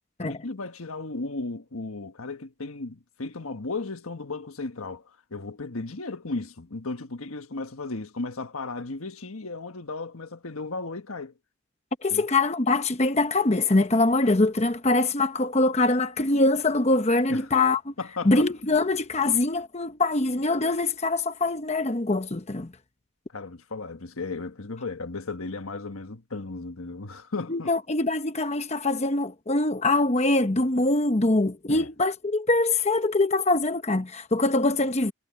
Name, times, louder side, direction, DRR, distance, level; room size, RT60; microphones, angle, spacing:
voice 1, 0.2-11.3 12.1-12.3 17.3-17.5 18.0-18.5 23.3-27.7 31.7-31.9, left 3 dB, 85° left, 1.5 m, -35 dB
voice 2, 12.0-17.9 18.2-22.7 27.5-35.1, left 2 dB, 30° left, 0.9 m, -23 dB
head